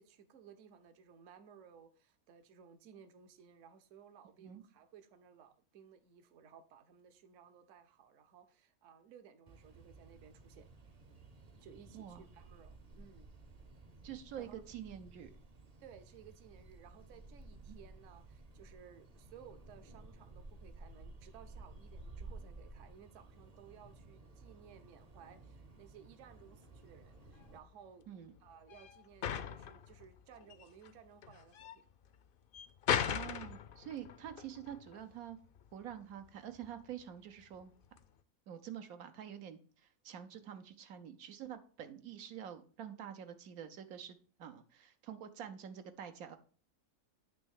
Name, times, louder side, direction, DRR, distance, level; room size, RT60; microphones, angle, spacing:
voice 1, 0.0-10.7 11.6-13.3 14.4-14.6 15.8-28.1 28.4-31.8, right 8 dB, 65° right, 1.1 m, -58 dB
sound 1, 9.5-27.6, right 2 dB, 40° right, 0.6 m, -55 dB
voice 2, 14.0-15.3 17.7-17.8 28.1-28.3 33.0-35.4 35.7-37.7 38.5-46.4, right 9 dB, 85° right, 1.2 m, -47 dB
sound 2, 26.3-38.2, left 8 dB, 65° left, 0.5 m, -41 dB
9.1 x 3.2 x 6.4 m
omnidirectional pair, 1.5 m